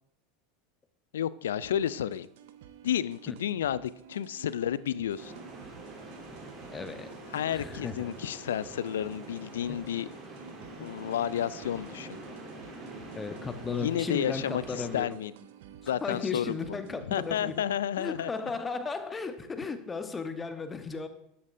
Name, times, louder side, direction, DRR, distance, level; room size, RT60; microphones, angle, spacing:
voice 1, 1.1-2.3 2.8-5.3 7.3-10.1 10.8-12.2 13.7-15.3 15.9-16.5 17.1-18.3, left 10 dB, 75° left, 19 dB, 0.3 m, -31 dB
sound 1, 1.6-17.6, right 10 dB, 65° right, 0.7 m, -53 dB
sound 2, 5.2-15.0, right 2 dB, 45° right, 3.2 m, -45 dB
voice 2, 6.7-7.1 7.5-8.1 9.7-9.8 10.8-10.9 13.1-15.2 15.8-17.5 17.9-21.1, left 4 dB, 20° left, 9 dB, 1.0 m, -35 dB
12.5 x 8.5 x 2.6 m, 0.78 s
hypercardioid pair, 80°, 0 cm